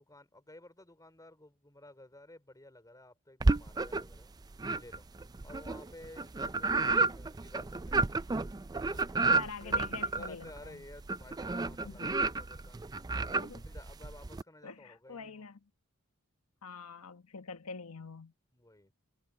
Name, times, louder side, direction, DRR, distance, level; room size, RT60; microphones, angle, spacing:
voice 1, 0.0-4.3 4.7-5.1 5.4-8.0 8.8-9.1 9.6-12.8 13.6-15.4 18.5-18.9, left 1 dB, 15° left, 3.6 m, -54 dB
sound 1, 3.4-4.2 4.6-14.4, right 3 dB, 15° right, 0.4 m, -31 dB
voice 2, 9.3-10.8 11.8-12.2 13.4-13.7 14.6-15.6 16.6-18.3, left 4 dB, 80° left, 1.1 m, -45 dB
head